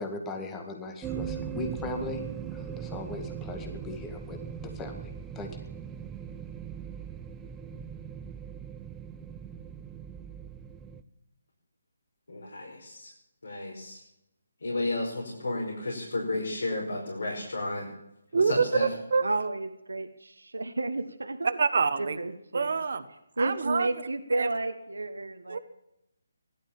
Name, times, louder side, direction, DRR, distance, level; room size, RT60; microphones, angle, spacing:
voice 1, 0.0-2.2 2.5-4.4 4.6-5.6, left 2 dB, 15° left, 4 dB, 2.0 m, -38 dB
sound 1, 1.0-11.0, right 8 dB, 10° right, 0.7 m, -39 dB
voice 2, 12.3-13.1 13.4-14.0 14.6-17.9 18.3-18.9, left 2 dB, 75° left, -2 dB, 5.0 m, -32 dB
voice 3, 18.3-19.2 21.6-22.2 22.5-23.0 23.4-23.9 24.4-24.5 25.5-25.6, right 5 dB, 60° right, 10 dB, 1.3 m, -26 dB
voice 4, 19.2-21.6 22.0-22.8 23.4-25.6, right 2 dB, 85° right, 7 dB, 1.3 m, -32 dB
16.0 x 12.0 x 7.2 m, 0.85 s
figure-of-eight pair, 150°, 0 cm